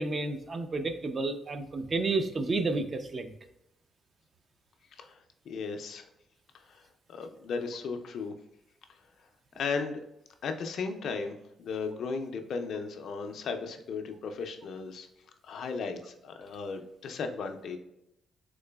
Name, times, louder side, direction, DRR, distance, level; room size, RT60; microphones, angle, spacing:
voice 1, 0.0-3.3, right 3 dB, 35° right, 8 dB, 0.4 m, -31 dB
voice 2, 5.5-6.1 6.7-6.8 7.1-8.3 9.5-10.0 10.4-15.1 15.4-17.8, left 5 dB, 70° left, 5 dB, 0.4 m, -36 dB
3.7 x 3.2 x 2.2 m, 0.85 s
cardioid pair, 95°, 0 cm